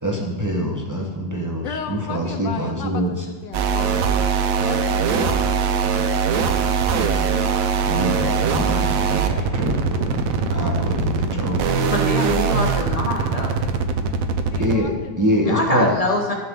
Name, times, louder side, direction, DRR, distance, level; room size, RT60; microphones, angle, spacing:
voice 1, 0.0-3.2 7.9-10.2 10.5-11.8 14.6-15.9, equal, 20° right, -1 dB, 0.4 m, -25 dB
voice 2, 1.6-3.2 3.4-5.7 13.6-13.7 14.4-15.6, left 6 dB, 70° left, 6 dB, 1.2 m, -35 dB
sound 1, 3.5-14.8, right 5 dB, 75° right, 0.8 m, -21 dB
voice 3, 11.9-13.6 15.5-16.3, left 1 dB, 40° left, 0 dB, 0.5 m, -24 dB
13.5 x 6.6 x 3.7 m, 1.3 s
omnidirectional pair, 2.2 m